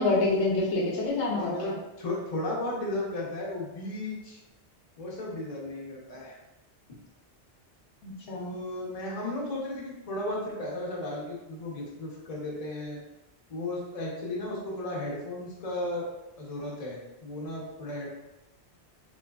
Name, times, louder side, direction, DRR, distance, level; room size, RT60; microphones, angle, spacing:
voice 1, 0.0-1.8 8.0-8.6, left 2 dB, 75° left, -2 dB, 1.0 m, -27 dB
voice 2, 1.2-4.4 5.0-6.4 6.9-7.0 8.3-13.0 13.5-16.1 16.4-18.1, left 1 dB, 35° left, -4 dB, 0.8 m, -35 dB
3.7 x 3.0 x 2.3 m, 0.98 s
omnidirectional pair, 1.2 m